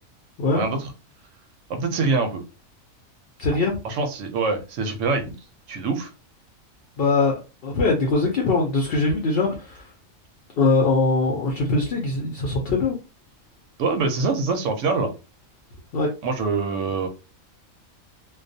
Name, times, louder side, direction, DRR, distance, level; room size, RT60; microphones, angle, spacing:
voice 1, 0.5-0.9 1.7-2.4 3.8-5.3 5.7-6.1 13.8-15.1 16.2-17.1, right 4 dB, 70° right, 5 dB, 0.8 m, -24 dB
voice 2, 3.4-3.8 7.0-9.9 10.6-13.0 15.9-16.1, left 3 dB, 60° left, 0 dB, 0.7 m, -22 dB
2.3 x 2.2 x 2.6 m, 0.30 s
omnidirectional pair, 1.4 m